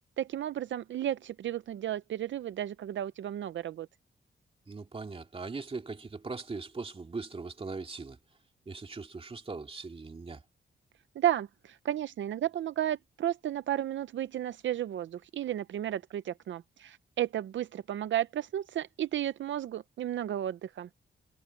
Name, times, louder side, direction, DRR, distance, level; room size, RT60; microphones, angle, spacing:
voice 1, 0.2-3.9 11.2-20.9, right 11 dB, 80° right, 0.6 m, -33 dB
voice 2, 4.7-8.2 8.7-10.4, right 4 dB, 30° right, 2.5 m, -40 dB
wide cardioid pair, 125°, 19 cm